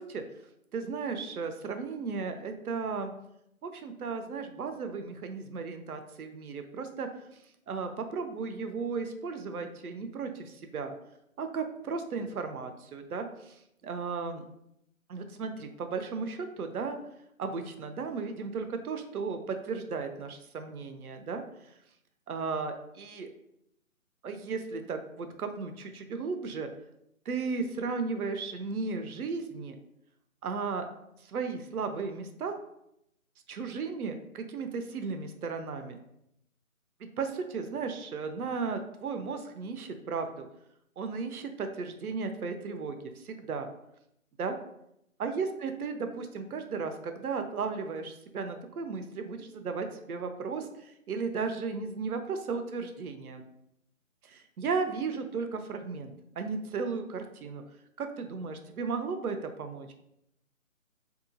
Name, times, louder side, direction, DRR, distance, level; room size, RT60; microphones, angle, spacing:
voice 1, 0.7-3.1 3.6-7.1 7.7-10.9 11.4-14.4 15.1-17.0 17.4-21.4 22.3-23.3 24.2-26.7 27.3-29.8 30.4-30.9 31.2-32.6 33.5-36.0 37.0-40.5 41.0-43.7 44.4-44.6 45.2-53.4 54.2-57.6 58.0-59.9, right 5 dB, 85° right, 7 dB, 0.6 m, -35 dB
2.7 x 2.3 x 2.6 m, 0.79 s
figure-of-eight pair, 165°, 43 cm